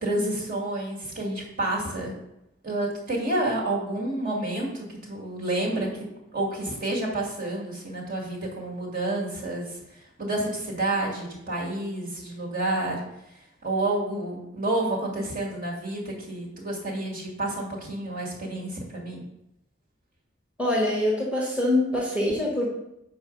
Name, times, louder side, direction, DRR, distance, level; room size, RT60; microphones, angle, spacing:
voice 1, 0.0-2.1 2.6-5.9 6.3-9.8 10.2-13.0 13.6-19.2, right 2 dB, 45° right, -3 dB, 2.2 m, -29 dB
voice 2, 20.6-22.7, left 1 dB, 5° right, -5 dB, 1.4 m, -24 dB
7.1 x 4.7 x 5.2 m, 0.83 s
head